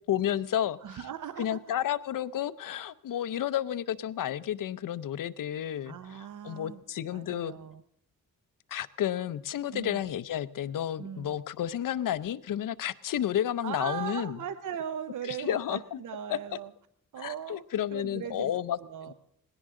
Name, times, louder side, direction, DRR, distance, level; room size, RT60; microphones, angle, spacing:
voice 1, 0.1-1.0 1.4-5.9 6.4-7.5 8.7-14.4 15.2-16.0 16.3-16.4 17.2-18.8 19.1-19.2, left 11 dB, 65° left, 0.6 m, -31 dB
voice 2, 0.8-1.6 5.8-6.8 7.1-7.8 9.7-10.0 11.0-11.4 13.6-16.7 17.1-17.6 17.9-18.5 18.8-19.1, right 9 dB, 60° right, 0.7 m, -39 dB
20.0 x 17.0 x 3.7 m
wide cardioid pair, 125°, 35 cm